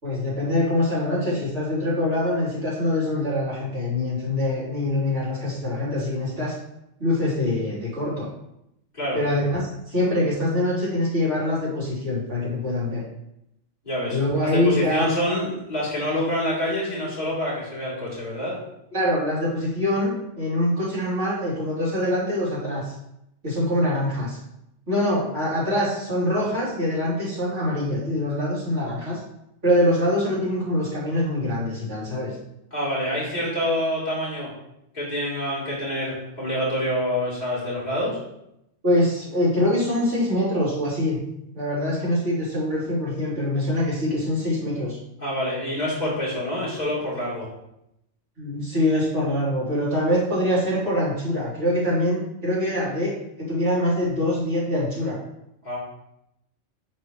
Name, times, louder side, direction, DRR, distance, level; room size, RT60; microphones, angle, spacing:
voice 1, 0.0-6.6 7.0-8.3 9.1-13.0 14.1-15.2 18.9-22.9 23.4-24.4 24.9-29.2 29.6-32.4 38.8-41.2 41.5-45.0 48.4-55.2, left 1 dB, 65° right, -9 dB, 3.8 m, -24 dB
voice 2, 13.8-14.2 14.5-18.6 32.7-34.5 34.9-38.2 45.2-47.5 55.6-55.8, left 1 dB, 35° left, -9 dB, 3.4 m, -27 dB
12.5 x 4.5 x 3.2 m, 0.83 s
omnidirectional pair, 1.3 m